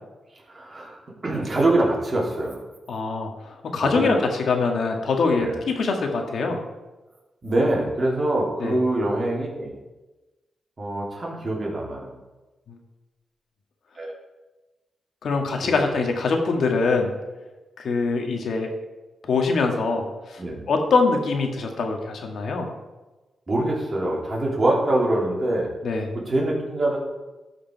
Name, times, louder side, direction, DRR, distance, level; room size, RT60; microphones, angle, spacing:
voice 1, 0.5-2.6 3.8-4.2 5.4-5.6 7.4-9.7 10.8-12.2 13.9-14.1 15.6-15.8 20.4-20.7 23.5-25.7 26.1-27.0, right 1 dB, 35° right, -3 dB, 3.0 m, -24 dB
voice 2, 2.9-6.6 8.6-8.8 12.7-12.8 15.2-17.1 17.8-18.7 19.2-20.4 20.7-22.7 25.8-26.1, left 4 dB, 70° left, 3 dB, 1.7 m, -23 dB
13.5 x 5.1 x 4.6 m, 1.1 s
cardioid pair, 85°, 0 cm